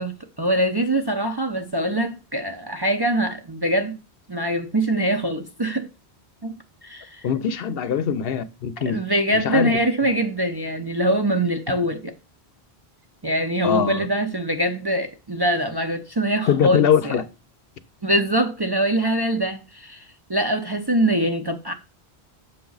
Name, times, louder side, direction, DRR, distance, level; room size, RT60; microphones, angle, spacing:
voice 1, 0.0-3.9 4.3-5.9 6.4-6.6 6.8-7.3 8.9-12.1 13.2-17.1 18.0-21.7, right 1 dB, 30° right, 0.5 m, -23 dB
voice 2, 7.2-9.0 9.3-9.8 13.6-14.1 16.5-17.2, left 7 dB, 65° left, 0.8 m, -22 dB
7.2 x 5.9 x 3.9 m
omnidirectional pair, 1.1 m